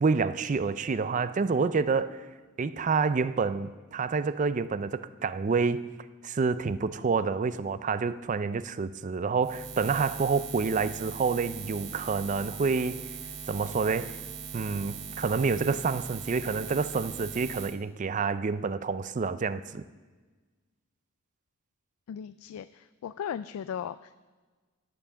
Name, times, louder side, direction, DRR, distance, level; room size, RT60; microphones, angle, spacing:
voice 1, 0.0-2.3 2.6-5.9 6.2-13.0 13.5-14.2 14.5-19.8, right 4 dB, 35° right, 0.4 m, -28 dB
Buzz, 9.4-17.8, right 6 dB, 60° right, 0.8 m, -40 dB
voice 2, 22.1-24.3, left 8 dB, 80° left, 0.3 m, -37 dB
11.5 x 7.2 x 7.0 m
head